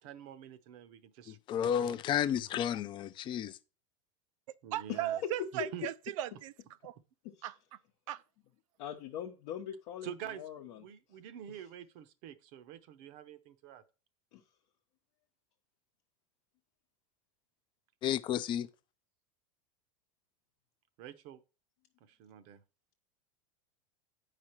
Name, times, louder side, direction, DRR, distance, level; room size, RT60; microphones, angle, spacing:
voice 1, 0.0-2.0 4.6-5.2 5.5-5.8 10.0-13.8 21.0-21.4 22.0-22.6, right 10 dB, 55° right, 0.8 m, -47 dB
voice 2, 1.3-3.6 18.0-18.7, left 9 dB, 30° left, 0.4 m, -32 dB
voice 3, 4.7-6.5 6.8-7.0 7.4-7.6 8.1-8.2, right 13 dB, 75° right, 0.5 m, -37 dB
voice 4, 8.8-10.1 10.4-10.8 14.3-14.4, left 10 dB, 60° left, 0.8 m, -42 dB
8.6 x 5.0 x 4.4 m
supercardioid pair, 140°, 17 cm